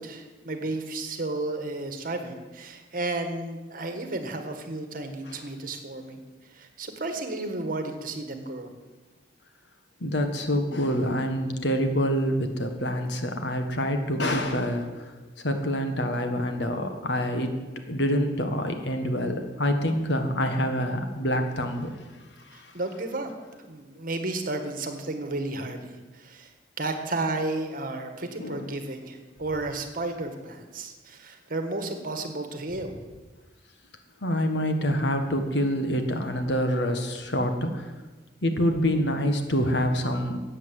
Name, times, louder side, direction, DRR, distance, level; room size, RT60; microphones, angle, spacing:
voice 1, 0.0-8.8 22.5-23.3 23.6-26.5 26.8-33.0, right 2 dB, 50° right, 7 dB, 1.7 m, -33 dB
voice 2, 10.0-15.1 15.4-17.6 17.9-21.9 22.5-22.7 28.4-28.7 34.2-37.9 38.4-40.4, equal, 65° left, 6 dB, 1.7 m, -26 dB
14.5 x 8.9 x 7.7 m, 1.2 s
head